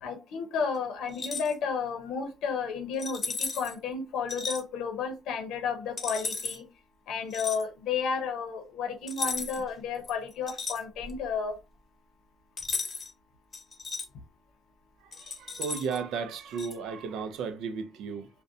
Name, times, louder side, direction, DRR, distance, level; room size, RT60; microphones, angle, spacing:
voice 1, 0.0-6.7 7.1-11.6, left 6 dB, 85° left, 0.7 m, -32 dB
sound 1, 1.1-1.5 3.0-3.7 4.3-4.6 6.0-6.6 7.3-7.6 9.1-9.7 10.0-11.2 12.6-13.1 13.5-14.1 15.1-16.0 16.6-16.7, left 4 dB, 40° left, 0.7 m, -35 dB
voice 2, 15.0-18.3, right 6 dB, 85° right, 0.4 m, -34 dB
2.4 x 2.1 x 2.6 m
cardioid pair, 90°, 0 cm